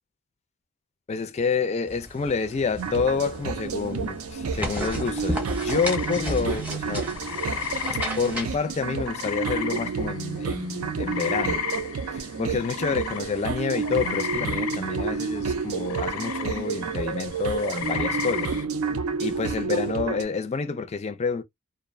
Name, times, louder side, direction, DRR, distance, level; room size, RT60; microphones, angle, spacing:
voice 1, 1.1-7.1 8.2-11.6 12.1-18.5 19.2-21.4, left 5 dB, 30° left, 0.3 m, -28 dB
sound 1, 1.9-8.6, equal, 5° right, 0.7 m, -34 dB
sound 2, 2.8-20.2, right 5 dB, 80° right, 0.5 m, -30 dB
sound 3, 5.7-10.4 10.7-18.6, left 7 dB, 85° left, 0.5 m, -34 dB
2.5 x 2.0 x 2.4 m
head